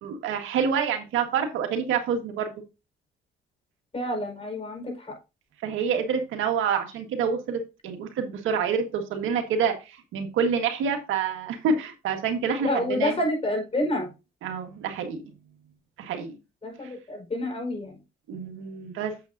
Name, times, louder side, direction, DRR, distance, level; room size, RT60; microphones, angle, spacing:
voice 1, 0.0-2.5 5.6-13.2 14.4-15.2 16.0-16.4 18.3-19.1, right 6 dB, 85° right, 5 dB, 1.7 m, -27 dB
voice 2, 3.9-5.1 12.6-14.1 16.6-18.0, left 1 dB, 30° left, 2 dB, 4.9 m, -28 dB
8.5 x 7.6 x 2.7 m, 0.27 s
cardioid pair, 90°, 20 cm